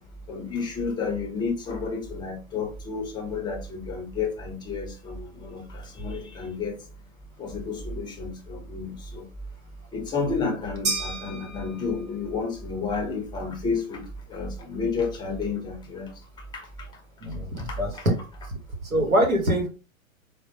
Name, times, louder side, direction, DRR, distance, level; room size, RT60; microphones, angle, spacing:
voice 1, 0.3-6.8 7.4-9.3 9.9-16.1 16.5-16.7 17.6-17.8, left 4 dB, 10° left, 0.6 m, -31 dB
sound 1, 10.8-12.3, right 3 dB, 50° right, 1.9 m, -32 dB
voice 2, 17.2-18.2 18.5-19.7, equal, 85° right, 1.3 m, -24 dB
4.4 x 2.0 x 2.8 m
figure-of-eight pair, 105°, 41 cm